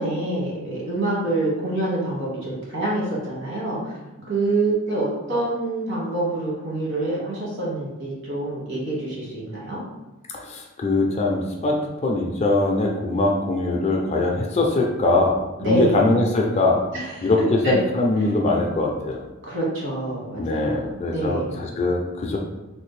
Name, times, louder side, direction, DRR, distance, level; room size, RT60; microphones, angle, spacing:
voice 1, 0.0-3.9 4.3-9.8 15.6-16.0 16.9-17.3 17.6-17.8 19.4-21.5, right 2 dB, 55° right, -6 dB, 1.4 m, -26 dB
voice 2, 10.4-16.8 17.2-19.2 20.4-22.4, left 2 dB, 30° left, 0 dB, 0.4 m, -22 dB
3.2 x 2.5 x 3.2 m, 1.1 s
head